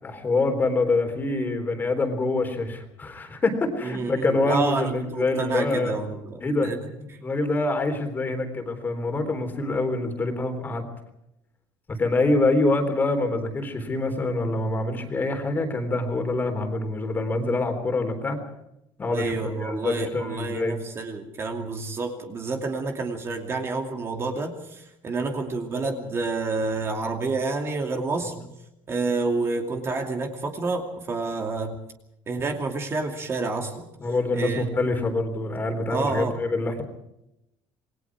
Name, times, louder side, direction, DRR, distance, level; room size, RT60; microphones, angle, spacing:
voice 1, 0.0-6.0 6.4-6.7 7.0-10.8 11.9-18.4 19.0-19.3 19.6-20.8 34.0-36.8, left 2 dB, 20° left, 6 dB, 3.8 m, -25 dB
voice 2, 3.8-6.9 19.1-28.3 28.9-31.7 32.3-33.9 34.3-34.7 35.9-36.4, right 3 dB, 25° right, 3 dB, 2.6 m, -29 dB
28.0 x 21.5 x 4.8 m, 0.83 s
cardioid pair, 165°, 10 cm